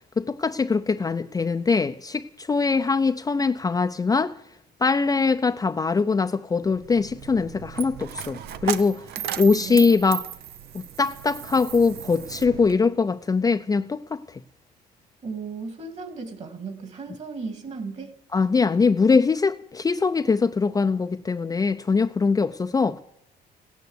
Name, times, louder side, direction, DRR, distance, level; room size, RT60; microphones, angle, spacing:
voice 1, 0.2-4.4 4.8-9.0 9.4-10.2 10.7-14.4 18.3-23.0, left 4 dB, 20° left, 0.6 m, -22 dB
Coin (dropping), 6.6-12.7, right 11 dB, 70° right, 0.8 m, -35 dB
voice 2, 9.6-9.9 15.2-18.2, right 4 dB, 40° right, 2.5 m, -35 dB
16.5 x 9.3 x 8.1 m
cardioid pair, 110°, 17 cm